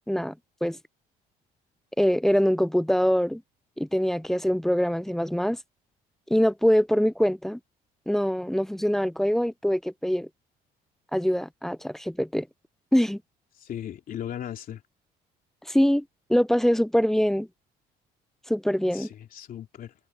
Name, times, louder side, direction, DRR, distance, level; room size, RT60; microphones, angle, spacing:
voice 1, 2.0-3.4 3.8-5.6 6.3-7.6 8.1-10.3 11.1-12.5 12.9-13.2 15.7-16.0 16.3-17.5 18.5-19.1, equal, ahead, 0.3 m, -23 dB
voice 2, 13.6-14.8 18.9-19.9, left 10 dB, 55° left, 3.0 m, -37 dB
cardioid pair, 110°, 17 cm